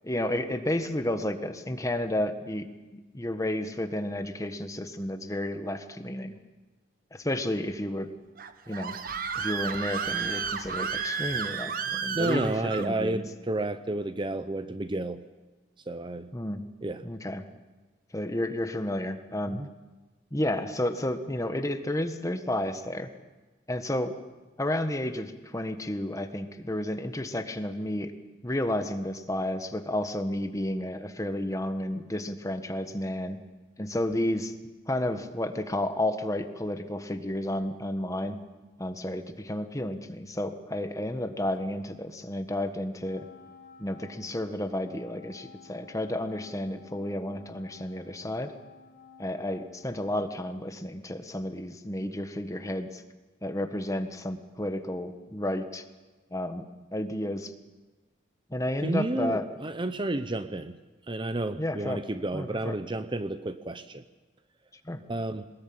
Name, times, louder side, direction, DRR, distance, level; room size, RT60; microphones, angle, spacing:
voice 1, 0.0-2.6 2.9-6.3 7.1-8.1 8.7-9.0 9.3-12.5 12.8-13.2 16.3-16.6 17.0-17.4 18.1-19.6 20.3-23.1 23.7-24.1 24.6-28.1 28.4-33.4 33.8-34.5 34.9-38.4 38.8-43.3 43.8-48.5 49.2-53.0 53.4-55.8 56.3-57.5 58.5-59.4 61.6-62.0 62.3-62.7 64.8-65.0, left 1 dB, 20° left, 8 dB, 1.5 m, -31 dB
Screaming, 8.4-12.9, right 6 dB, 50° right, 1.3 m, -32 dB
voice 2, 12.1-15.2 15.9-16.3 16.8-17.0 19.5-19.7 58.8-60.8 61.1-64.0 65.1-65.5, right 2 dB, 25° right, 11 dB, 0.8 m, -31 dB
Wind instrument woodwind instrument, 43.0-50.6, left 4 dB, 60° left, 5.0 m, -54 dB
22.5 x 20.0 x 8.8 m, 1.2 s
head